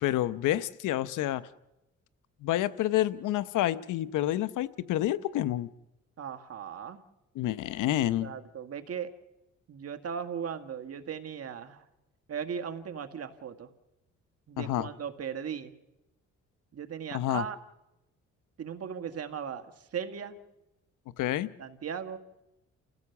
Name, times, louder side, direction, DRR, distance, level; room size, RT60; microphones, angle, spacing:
voice 1, 0.0-1.4 2.4-5.7 7.3-8.3 14.6-14.9 17.1-17.5 21.2-21.5, left 13 dB, 85° left, 15 dB, 0.9 m, -28 dB
voice 2, 6.2-7.0 8.2-9.1 9.7-11.8 12.3-13.7 14.5-15.7 16.7-17.6 18.6-19.7 19.9-20.4 21.6-22.2, right 7 dB, 55° right, 7 dB, 1.9 m, -37 dB
29.5 x 16.0 x 7.1 m, 0.95 s
cardioid pair, 90°, 30 cm